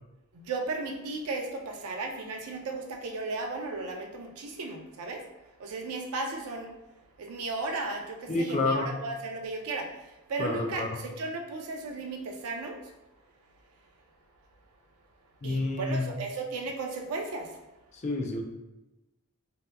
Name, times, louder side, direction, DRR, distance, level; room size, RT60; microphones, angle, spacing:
voice 1, 0.3-5.3 5.6-6.7 7.2-9.9 10.3-12.9 15.4-17.6, right 3 dB, 90° right, 2 dB, 0.4 m, -35 dB
voice 2, 8.3-8.9 10.4-10.9 15.4-16.1 17.9-18.4, left 2 dB, 30° left, 2 dB, 0.3 m, -29 dB
2.7 x 2.2 x 3.3 m, 0.99 s
head